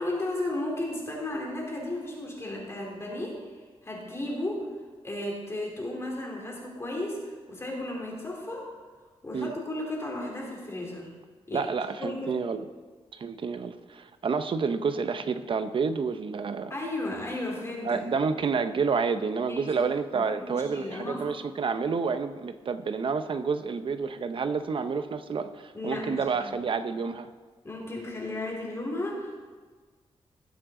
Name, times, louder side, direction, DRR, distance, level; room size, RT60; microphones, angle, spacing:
voice 1, 0.0-4.7 5.0-8.7 9.2-11.1 11.5-11.7 12.0-12.5 16.7-18.0 19.5-19.7 20.1-21.4 25.7-26.7 27.6-29.4, left 1 dB, 25° left, -2 dB, 3.3 m, -34 dB
voice 2, 11.5-12.6 13.1-16.7 17.8-27.3, right 5 dB, 55° right, 10 dB, 0.8 m, -29 dB
19.5 x 7.8 x 3.8 m, 1.4 s
wide cardioid pair, 100°, 11 cm